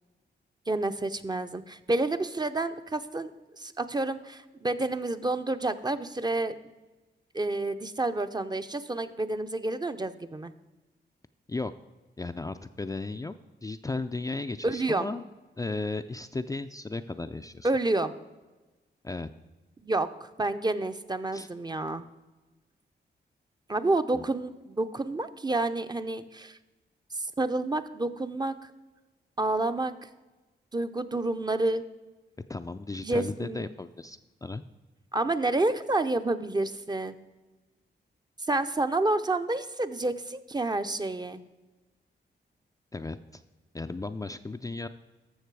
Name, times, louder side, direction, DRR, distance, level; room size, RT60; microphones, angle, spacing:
voice 1, 0.7-3.3 3.6-6.7 7.3-10.5 14.6-15.1 17.6-18.1 19.8-22.0 23.7-26.6 27.1-28.7 29.4-30.1 30.7-31.8 33.0-33.7 35.1-37.1 38.5-41.4, right 2 dB, 25° right, 9 dB, 0.6 m, -29 dB
voice 2, 12.2-13.3 13.6-15.2 15.6-17.7 19.0-19.3 21.3-21.5 24.1-24.3 32.5-34.6 42.9-43.4 43.7-44.9, left 3 dB, 20° left, 8 dB, 0.4 m, -35 dB
13.5 x 6.5 x 4.7 m, 1.2 s
cardioid pair, 85°, 18 cm